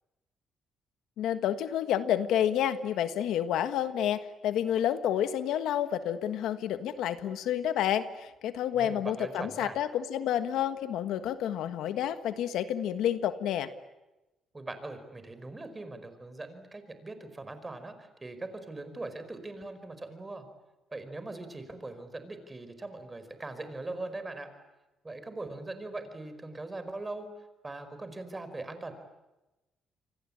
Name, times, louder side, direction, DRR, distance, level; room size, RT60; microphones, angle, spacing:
voice 1, 1.2-13.7, left 10 dB, 85° left, 11 dB, 1.4 m, -29 dB
voice 2, 8.7-9.8 14.5-20.5 20.9-24.5 25.0-28.9, right 2 dB, 20° right, 10 dB, 5.0 m, -41 dB
28.0 x 24.5 x 8.8 m, 1.0 s
cardioid pair, 90°, 0 cm